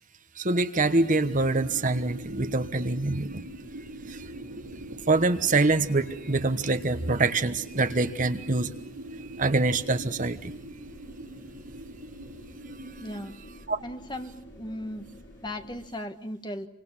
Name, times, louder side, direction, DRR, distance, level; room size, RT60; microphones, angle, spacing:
voice 1, 0.3-3.4 4.1-4.3 5.1-8.7 9.2-10.5 12.8-13.1 13.7-13.8, right 3 dB, 35° right, 10 dB, 1.1 m, -25 dB
sound 1, 0.8-13.3, right 1 dB, 80° right, 3.8 m, -43 dB
sound 2, 1.6-15.9, equal, 60° left, 4.2 m, -52 dB
voice 2, 13.0-13.3 13.8-15.1 15.4-16.7, left 1 dB, 20° left, 7 dB, 1.5 m, -37 dB
28.5 x 25.0 x 7.4 m, 0.71 s
head